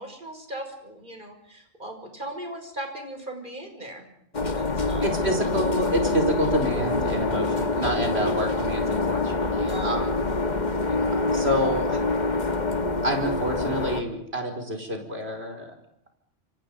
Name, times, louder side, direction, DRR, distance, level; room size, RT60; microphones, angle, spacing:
voice 1, 0.0-4.1 4.4-5.0 7.1-7.3 9.6-10.0, right 1 dB, 40° right, 5 dB, 5.8 m, -38 dB
sound 1, 4.3-14.0, left 3 dB, 40° left, 1.6 m, -26 dB
voice 2, 5.0-10.1 10.9-12.0 13.0-15.7, right 1 dB, 55° right, 4 dB, 5.2 m, -28 dB
28.5 x 27.5 x 5.3 m, 0.74 s
omnidirectional pair, 1.2 m